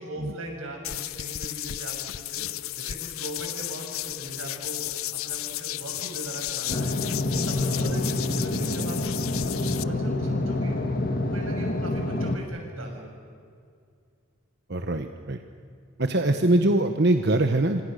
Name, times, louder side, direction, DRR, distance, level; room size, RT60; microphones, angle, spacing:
voice 1, 0.0-7.0 7.3-10.9 11.3-13.1, equal, 90° right, 1 dB, 6.9 m, -39 dB
sound 1, 0.8-9.8, left 14 dB, 90° left, 0.6 m, -34 dB
sound 2, 6.7-12.4, left 2 dB, 45° left, 1.8 m, -27 dB
voice 2, 14.7-15.4 16.0-17.8, right 1 dB, 55° right, 6 dB, 1.1 m, -22 dB
27.5 x 25.5 x 6.7 m, 2.3 s
head